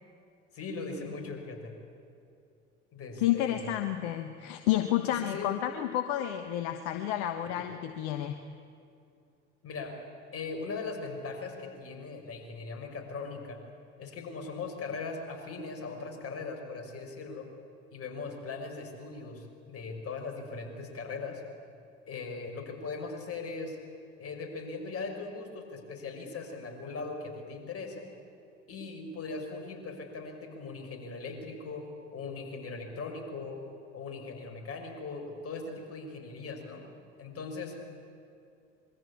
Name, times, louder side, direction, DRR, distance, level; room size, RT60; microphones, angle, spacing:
voice 1, 0.5-1.7 2.9-3.7 5.1-5.5 9.6-10.0 10.3-13.6 14.0-17.5 17.9-21.4 22.1-23.8 24.2-28.0 28.7-31.9 32.1-33.6 33.9-36.8 37.2-37.8, left 4 dB, 40° left, 3 dB, 5.9 m, -39 dB
voice 2, 3.2-8.4, left 12 dB, 65° left, 8 dB, 1.3 m, -30 dB
26.5 x 22.0 x 8.6 m, 2.5 s
figure-of-eight pair, 65°, 37 cm